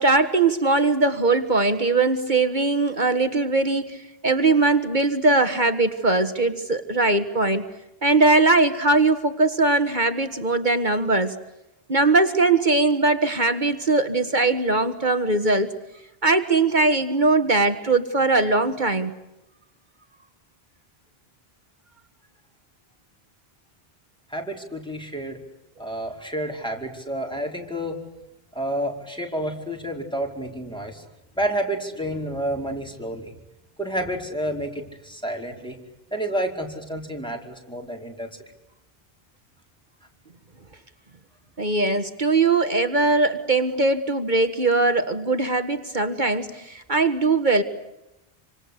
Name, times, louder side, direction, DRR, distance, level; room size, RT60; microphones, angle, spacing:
voice 1, 0.0-7.7 8.0-11.4 11.9-15.7 16.2-19.1 41.6-47.6, right 3 dB, 50° right, 9 dB, 1.8 m, -20 dB
voice 2, 24.3-25.4 25.8-28.0 28.5-31.0 31.4-33.3 33.8-35.8 36.1-38.3, right 1 dB, 5° left, 0 dB, 4.9 m, -29 dB
27.5 x 26.0 x 8.2 m, 0.91 s
omnidirectional pair, 1.0 m